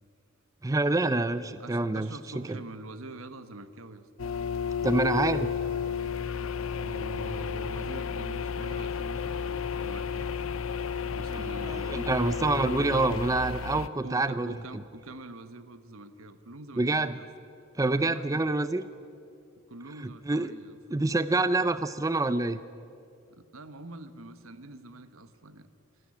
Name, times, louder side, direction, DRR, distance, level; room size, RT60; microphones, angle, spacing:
voice 1, 0.6-2.1 2.5-2.6 4.8-5.5 11.6-14.5 16.8-17.2 17.8-18.8 20.0-20.5 20.9-22.6, right 2 dB, 15° right, 13 dB, 0.4 m, -27 dB
voice 2, 1.6-4.1 6.2-10.3 11.1-12.1 12.4-12.7 13.7-17.3 17.9-18.4 19.7-20.8 23.3-25.7, right 2 dB, 75° right, 12 dB, 1.2 m, -45 dB
sound 1, 4.2-13.9, left 6 dB, 75° left, 0.7 m, -32 dB
27.5 x 12.5 x 9.8 m, 2.6 s
head